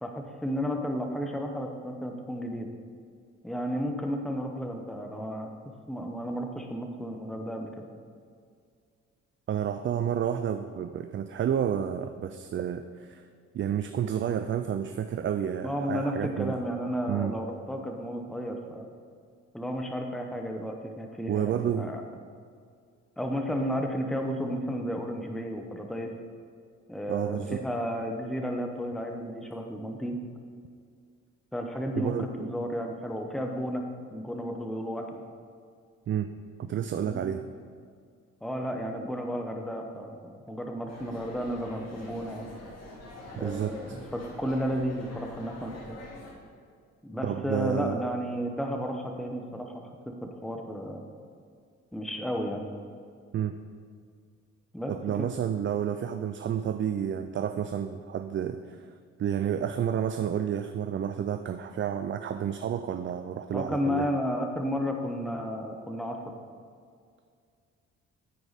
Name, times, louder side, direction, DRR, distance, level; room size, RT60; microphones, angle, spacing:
voice 1, 0.0-2.7 3.4-5.5 5.9-7.9 15.6-18.9 19.5-22.0 23.2-26.1 26.9-30.2 31.5-33.8 34.1-35.2 37.0-37.2 38.4-42.5 43.4-46.0 47.0-51.0 51.9-52.6 54.7-55.3 63.5-66.3, equal, ahead, 3 dB, 0.9 m, -33 dB
voice 2, 9.5-13.3 13.5-16.6 17.1-17.3 21.3-21.9 27.1-27.6 32.0-32.5 36.1-36.3 36.6-37.4 43.4-43.7 47.2-48.0 53.3-53.5 54.9-58.9 59.2-64.1, right 9 dB, 40° right, 8 dB, 0.4 m, -30 dB
sound 1, 40.9-46.3, left 1 dB, 60° left, 2.2 m, -46 dB
14.0 x 4.8 x 4.1 m, 2.2 s
cardioid pair, 90°, 30 cm